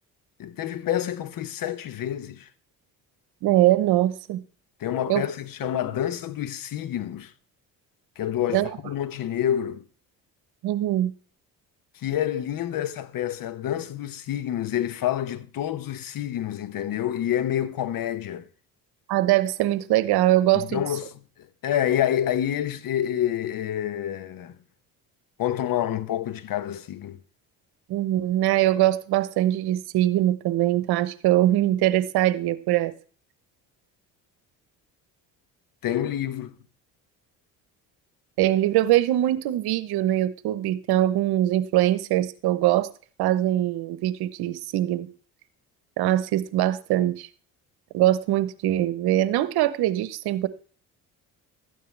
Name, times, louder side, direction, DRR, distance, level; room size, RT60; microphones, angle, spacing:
voice 1, 0.4-2.5 4.8-7.3 8.2-9.8 11.9-18.4 20.7-24.6 25.4-27.2 35.8-36.5, left 11 dB, 60° left, 1.1 m, -28 dB
voice 2, 3.4-4.4 5.1-5.2 5.7-5.9 8.5-8.7 10.6-11.1 19.1-20.8 27.9-32.9 38.4-42.9 43.2-45.1 46.0-47.3 47.9-50.5, right 14 dB, 75° right, 1.0 m, -22 dB
13.0 x 9.3 x 3.3 m
supercardioid pair, 85°, 38 cm